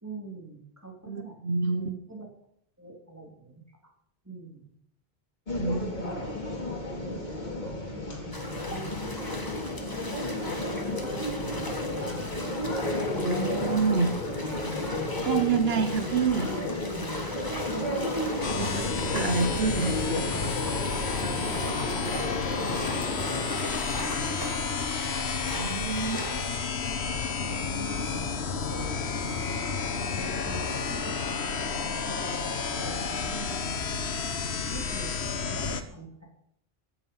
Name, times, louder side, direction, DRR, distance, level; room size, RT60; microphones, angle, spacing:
voice 1, 0.0-1.3 1.7-2.3 2.8-3.6 4.2-4.7 5.7-6.4 6.7-7.2 7.5-7.8 8.1-9.0 9.8-10.4 10.9-12.4 13.1-13.4 15.7-16.2 17.7-19.2 21.0-23.1 23.5-24.9 25.4-25.9 26.3-26.5 27.0-29.3 30.0-31.2 31.6-34.1 34.6-35.2 35.5-36.1, right 3 dB, 15° right, 1 dB, 3.1 m, -45 dB
voice 2, 1.1-1.9 5.6-5.9 13.2-14.1 15.2-16.5 18.3-20.3 25.5-26.2 26.5-26.6, right 5 dB, 75° right, 9 dB, 1.2 m, -28 dB
sound 1, 5.5-23.6, left 1 dB, 45° left, 2.5 m, -33 dB
sound 2, 8.3-26.8, left 1 dB, 20° left, 1.7 m, -39 dB
sound 3, 18.4-35.8, left 5 dB, 85° left, 1.4 m, -31 dB
15.5 x 10.5 x 5.5 m, 0.71 s
omnidirectional pair, 1.0 m